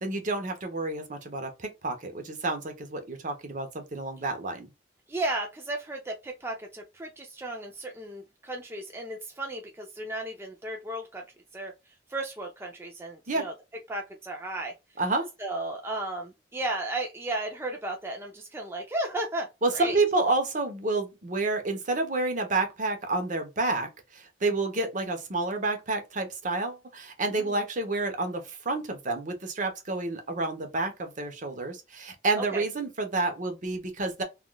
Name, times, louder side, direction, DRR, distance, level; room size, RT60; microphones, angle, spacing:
voice 1, 0.0-4.7 13.3-13.5 15.0-15.3 19.6-34.2, right 3 dB, 45° right, 0.8 m, -29 dB
voice 2, 5.1-11.2 11.5-13.5 13.9-14.7 15.4-20.0 27.3-27.6 32.4-32.6, right 2 dB, 15° right, 0.4 m, -34 dB
3.5 x 2.4 x 2.2 m
head